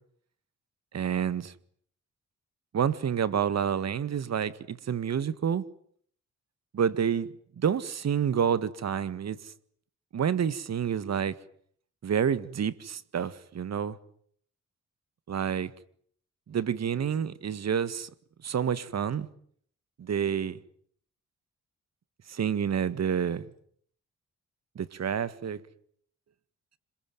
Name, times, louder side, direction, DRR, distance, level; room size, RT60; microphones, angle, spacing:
voice 1, 0.9-1.5 2.7-5.6 6.7-9.5 10.1-11.4 12.0-14.0 15.3-15.7 16.5-18.1 18.4-19.3 20.0-20.6 22.3-23.5 24.8-25.6, right 8 dB, 65° right, 1.8 m, -28 dB
26.5 x 22.5 x 9.4 m
cardioid pair, 70°, 29 cm